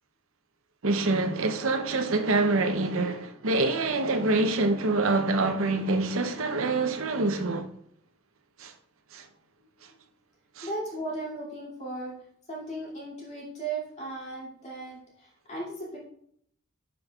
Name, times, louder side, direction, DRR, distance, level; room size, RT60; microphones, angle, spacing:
voice 1, 0.8-7.7 8.6-8.7 9.1-9.2 10.6-10.7, right 2 dB, 80° right, 0.8 m, -26 dB
voice 2, 10.6-12.2 12.5-16.0, right 2 dB, 35° left, 2.5 m, -36 dB
11.0 x 5.2 x 2.4 m
head